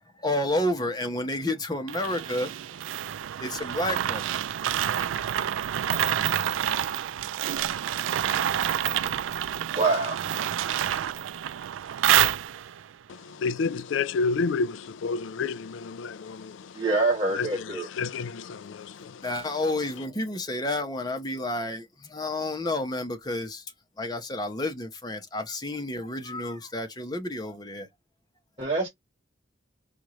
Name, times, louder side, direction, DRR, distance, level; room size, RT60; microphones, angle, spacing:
voice 1, 0.2-2.5 3.4-4.2 19.2-23.6 24.0-27.9, left 1 dB, 20° left, 1.0 m, -30 dB
sound 1, 1.9-12.9, right 10 dB, 80° right, 0.3 m, -28 dB
voice 2, 9.7-10.2 16.8-17.9 28.6-28.9, right 3 dB, 25° right, 1.3 m, -25 dB
voice 3, 13.1-16.9 17.4-19.4, left 4 dB, 75° left, 0.4 m, -30 dB
4.5 x 2.5 x 3.1 m
head